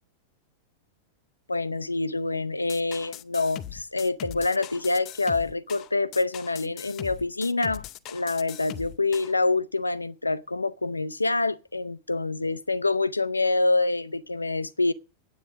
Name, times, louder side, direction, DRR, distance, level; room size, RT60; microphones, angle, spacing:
voice 1, 1.5-7.8 8.1-14.9, left 3 dB, 80° left, 0.6 m, -26 dB
sound 1, 2.7-9.3, left 12 dB, 35° left, 0.6 m, -40 dB
9.6 x 8.2 x 8.7 m
figure-of-eight pair, 90°, 0 cm